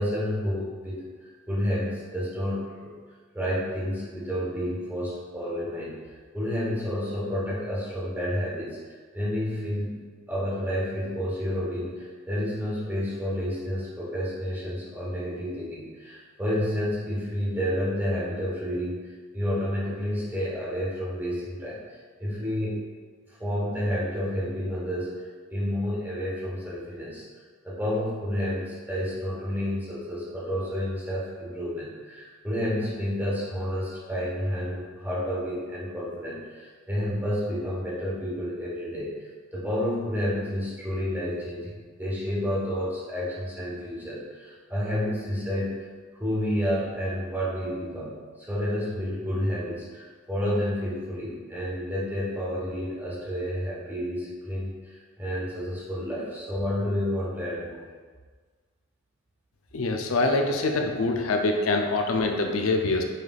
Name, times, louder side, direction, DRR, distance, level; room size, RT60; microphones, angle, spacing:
voice 1, 0.0-2.9 3.3-5.9 6.3-10.0 10.3-21.8 22.2-22.9 23.4-27.2 27.6-45.8 46.2-57.8, equal, 10° right, -7 dB, 1.1 m, -30 dB
voice 2, 59.7-63.0, left 2 dB, 80° left, 3 dB, 0.5 m, -24 dB
5.6 x 3.2 x 2.3 m, 1.5 s
head